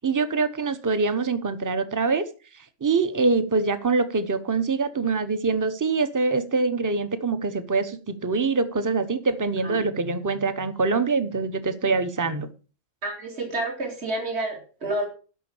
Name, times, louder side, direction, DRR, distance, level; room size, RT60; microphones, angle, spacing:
voice 1, 0.0-2.2 2.8-12.5, right 4 dB, 15° right, 11 dB, 0.8 m, -24 dB
voice 2, 13.0-15.1, right 2 dB, 60° right, 2 dB, 2.9 m, -29 dB
12.0 x 6.0 x 7.1 m, 0.37 s
omnidirectional pair, 1.3 m